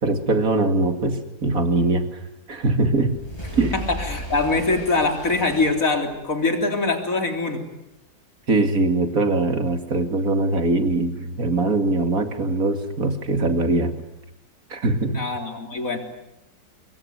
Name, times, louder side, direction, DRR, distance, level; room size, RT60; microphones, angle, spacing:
voice 1, 0.0-2.2 2.5-3.1 3.5-3.7 8.5-13.9 14.7-15.2, right 2 dB, 50° right, 7 dB, 2.8 m, -22 dB
sound 1, 2.8-6.4, equal, 15° left, 8.0 m, -35 dB
voice 2, 3.7-7.6 15.1-16.0, left 3 dB, 45° left, 4 dB, 4.1 m, -23 dB
25.5 x 22.0 x 9.6 m, 0.88 s
omnidirectional pair, 2.0 m